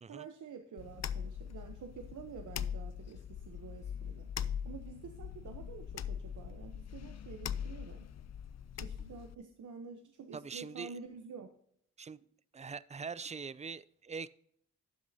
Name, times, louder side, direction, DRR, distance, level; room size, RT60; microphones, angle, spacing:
voice 1, 0.1-4.3 4.6-8.1 8.8-11.5, right 6 dB, 85° right, 0.9 m, -49 dB
sound 1, 0.8-9.3, left 8 dB, 60° left, 0.5 m, -41 dB
voice 2, 10.3-10.9 12.0-12.2 12.5-14.3, right 5 dB, 25° right, 0.4 m, -43 dB
12.5 x 8.0 x 2.7 m
cardioid pair, 55°, 30 cm